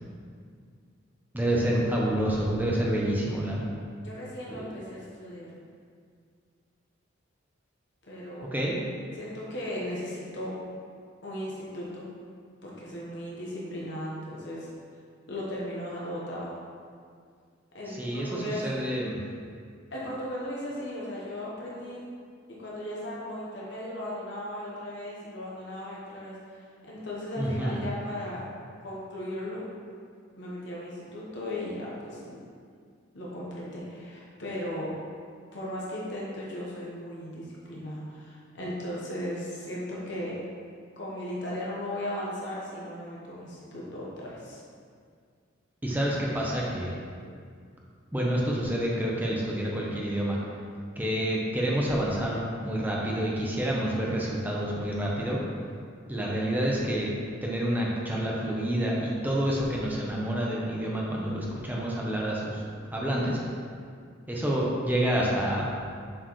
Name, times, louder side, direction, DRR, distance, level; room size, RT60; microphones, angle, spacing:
voice 1, 1.3-3.7 4.5-4.6 8.5-8.8 17.9-19.2 27.4-27.8 45.8-46.9 48.1-50.4 51.0-55.4 56.1-57.1 57.4-62.6 62.9-63.4 64.3-65.8, right 1 dB, 10° right, -4 dB, 0.7 m, -28 dB
voice 2, 4.0-5.5 8.0-8.5 9.1-10.6 11.2-12.1 12.6-14.7 15.3-16.5 17.7-18.7 19.9-22.0 22.5-28.4 28.8-29.6 30.4-32.4 33.1-34.9 35.5-40.4 41.0-44.6, left 1 dB, 60° left, -5 dB, 1.1 m, -36 dB
7.4 x 4.5 x 3.1 m, 2.1 s
head